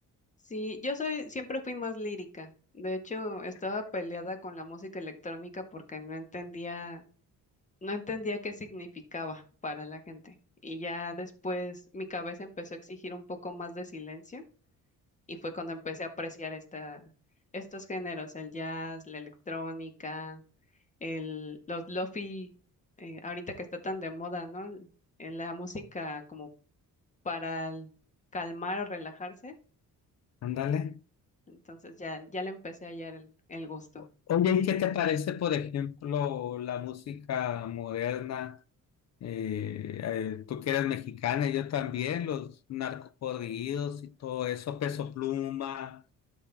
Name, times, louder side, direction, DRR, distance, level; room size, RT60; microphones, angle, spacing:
voice 1, 0.5-7.0 7.8-10.3 10.6-14.4 15.3-17.1 17.5-20.4 21.0-22.5 23.0-24.9 25.2-26.5 27.2-27.9 28.3-29.5 31.5-34.0, left 2 dB, 20° left, 1.6 m, -37 dB
voice 2, 30.4-31.0 34.3-38.6 39.2-46.0, left 9 dB, 50° left, 0.6 m, -31 dB
12.0 x 4.4 x 3.5 m
cardioid pair, 135°, 33 cm